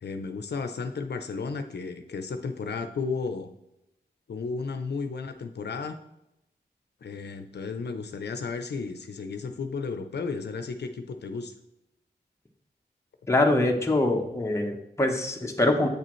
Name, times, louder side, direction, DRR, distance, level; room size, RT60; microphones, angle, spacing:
voice 1, 0.0-3.5 4.3-6.0 7.0-11.5, left 4 dB, 75° left, 7 dB, 0.7 m, -33 dB
voice 2, 13.3-15.9, left 2 dB, 15° left, 1 dB, 1.1 m, -24 dB
8.3 x 6.7 x 3.1 m, 0.84 s
wide cardioid pair, 120°, 17 cm